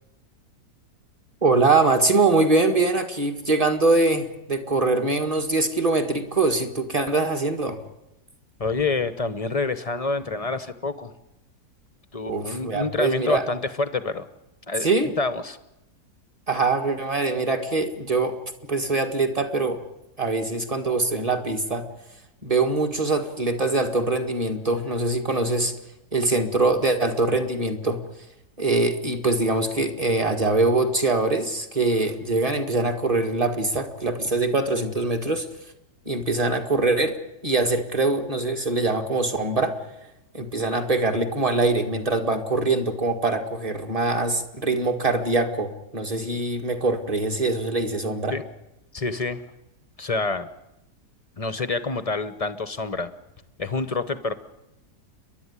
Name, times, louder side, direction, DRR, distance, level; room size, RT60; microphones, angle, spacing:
voice 1, 1.4-7.8 12.3-13.4 14.8-15.1 16.5-18.3 18.7-19.8 20.2-21.8 22.4-25.7 26.1-28.0 28.6-35.5 36.0-37.2 37.4-39.8 40.3-48.4, right 3 dB, 20° right, 5 dB, 1.7 m, -23 dB
voice 2, 8.6-11.1 12.1-14.3 14.7-14.9 15.2-15.6 48.3-48.4 48.9-49.4 50.0-50.5 51.4-53.1 53.6-54.3, left 3 dB, 30° left, 12 dB, 0.6 m, -27 dB
30.0 x 11.5 x 9.8 m, 0.92 s
omnidirectional pair, 1.7 m